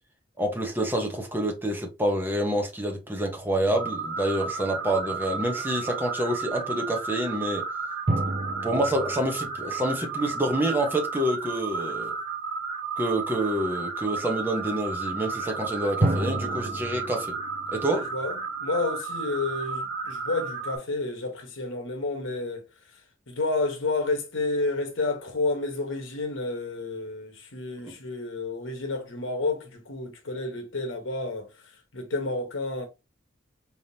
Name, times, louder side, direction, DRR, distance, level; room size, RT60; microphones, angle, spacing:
voice 1, 0.4-7.6 8.6-12.1 13.0-17.4 17.7-18.0, right 1 dB, 10° right, 1.0 m, -27 dB
sound 1, 3.4-5.1 8.1-10.8 16.0-19.0, right 1 dB, 40° right, 0.7 m, -32 dB
sound 2, 3.7-20.8, right 4 dB, 70° right, 1.5 m, -33 dB
voice 2, 17.8-22.6 22.9-23.0 23.3-32.9, left 3 dB, 85° left, 1.1 m, -30 dB
4.5 x 3.6 x 2.8 m
head